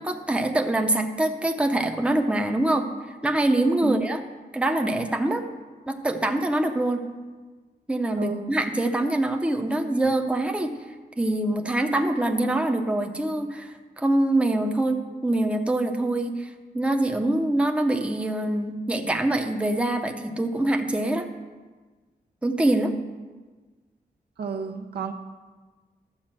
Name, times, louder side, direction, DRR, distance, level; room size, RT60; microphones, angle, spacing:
voice 1, 0.0-2.9 3.2-4.2 4.5-5.4 5.9-7.1 7.9-10.8 11.2-16.5 16.7-21.3 22.4-23.0, right 1 dB, 5° right, 5 dB, 0.7 m, -24 dB
voice 2, 3.8-4.1 8.2-8.4 24.4-25.1, right 4 dB, 80° right, 5 dB, 0.9 m, -31 dB
12.0 x 4.9 x 7.5 m, 1.3 s
wide cardioid pair, 115°, 16 cm